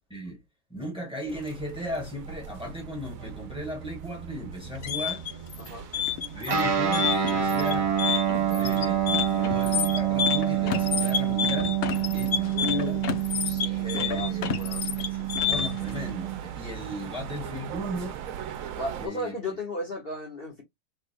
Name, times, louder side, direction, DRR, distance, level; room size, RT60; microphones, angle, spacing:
voice 1, 0.7-5.3 6.3-7.9 8.3-13.0 13.8-14.6 15.4-18.2 19.0-19.3, equal, 5° right, 1.6 m, -36 dB
sound 1, 1.3-19.1, right 9 dB, 75° right, 1.0 m, -41 dB
sound 2, 4.6-15.9, left 9 dB, 65° left, 0.6 m, -29 dB
Guitar, 6.5-16.4, right 10 dB, 50° right, 1.1 m, -27 dB
voice 2, 12.5-13.0 13.4-14.3 14.6-14.9 18.8-20.6, left 2 dB, 45° left, 1.5 m, -34 dB
3.6 x 3.4 x 2.2 m
omnidirectional pair, 1.5 m